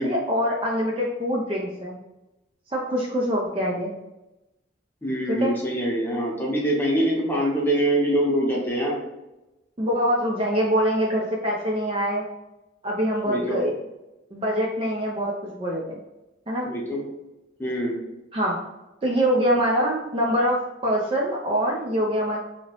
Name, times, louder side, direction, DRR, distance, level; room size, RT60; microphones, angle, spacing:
voice 1, 0.0-2.0 2.7-3.9 5.3-5.5 9.8-12.3 12.8-13.7 14.3-15.9 16.5-16.7 18.3-18.6 19.0-22.4, equal, 30° right, -2 dB, 0.4 m, -24 dB
voice 2, 5.0-9.0 13.3-13.6 16.6-17.0 17.6-18.0, right 1 dB, 10° left, -4 dB, 0.8 m, -24 dB
2.9 x 2.8 x 2.9 m, 0.96 s
head